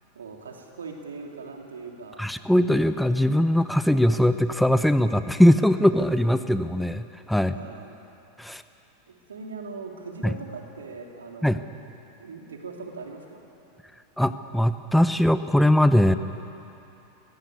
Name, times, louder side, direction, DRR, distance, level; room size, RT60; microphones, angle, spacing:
voice 1, 0.1-2.3 7.3-8.0 9.1-11.7 12.2-13.5, right 4 dB, 90° right, 1 dB, 2.8 m, -40 dB
voice 2, 2.2-7.5 8.4-8.6 11.4-11.6 14.2-16.1, left 1 dB, ahead, 11 dB, 0.8 m, -21 dB
18.5 x 16.0 x 9.4 m, 2.8 s
hypercardioid pair, 95°, 0 cm